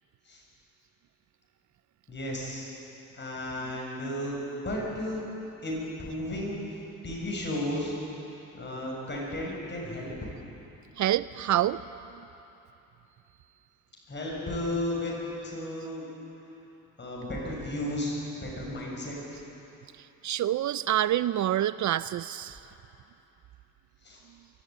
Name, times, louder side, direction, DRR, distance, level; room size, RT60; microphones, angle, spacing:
voice 1, 2.1-2.7 3.1-5.3 5.6-7.9 8.5-10.1 14.1-16.1 17.0-19.2 24.0-24.2, left 1 dB, 30° left, -3 dB, 7.2 m, -34 dB
voice 2, 11.0-11.8 20.0-22.6, right 12 dB, 55° right, 16 dB, 0.4 m, -27 dB
23.5 x 14.5 x 9.1 m, 3.0 s
cardioid pair, 110°, 35 cm